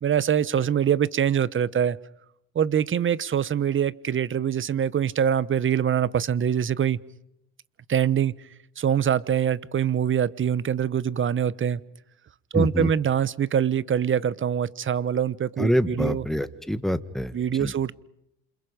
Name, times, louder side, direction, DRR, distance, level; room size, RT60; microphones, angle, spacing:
voice 1, 0.0-2.0 2.5-7.0 7.9-8.3 8.8-11.8 12.5-16.3 17.3-17.9, right 8 dB, 35° right, 19 dB, 1.0 m, -24 dB
voice 2, 12.5-12.9 15.6-17.3 17.6-17.7, equal, ahead, 11 dB, 1.6 m, -25 dB
28.5 x 27.0 x 5.2 m, 0.82 s
supercardioid pair, 75°, 34 cm